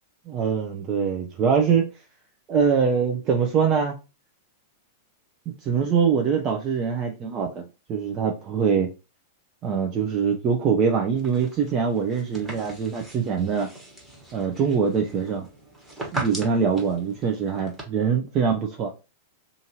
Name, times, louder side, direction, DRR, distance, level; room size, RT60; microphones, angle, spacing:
voice 1, 0.3-1.9 2.5-3.9 5.6-7.6 7.9-8.9 9.6-13.7 14.3-15.5 16.1-18.9, right 6 dB, 35° right, 3 dB, 0.5 m, -23 dB
sound 1, 11.1-17.8, right 2 dB, 10° right, 1.2 m, -39 dB
2.6 x 2.5 x 2.9 m, 0.29 s
figure-of-eight pair, 100°, 0 cm